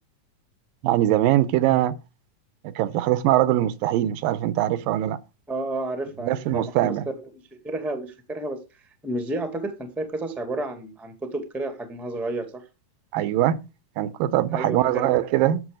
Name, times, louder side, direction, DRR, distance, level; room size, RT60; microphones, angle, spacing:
voice 1, 0.8-1.9 2.6-5.2 6.2-7.1 13.1-13.6 14.0-15.6, right 13 dB, 85° right, 2.4 m, -22 dB
voice 2, 5.5-7.3 7.6-12.6 14.5-15.2, right 2 dB, ahead, 0.4 m, -31 dB
11.0 x 6.8 x 5.0 m
omnidirectional pair, 4.0 m